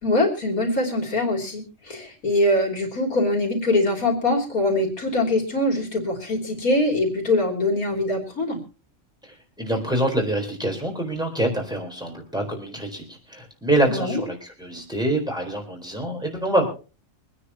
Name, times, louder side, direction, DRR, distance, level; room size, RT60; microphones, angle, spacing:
voice 1, 0.0-8.6 13.9-14.2, left 1 dB, 85° left, 1 dB, 3.7 m, -23 dB
voice 2, 9.2-16.7, right 1 dB, 5° right, 2 dB, 4.2 m, -26 dB
25.0 x 9.8 x 2.9 m, 0.34 s
omnidirectional pair, 1.5 m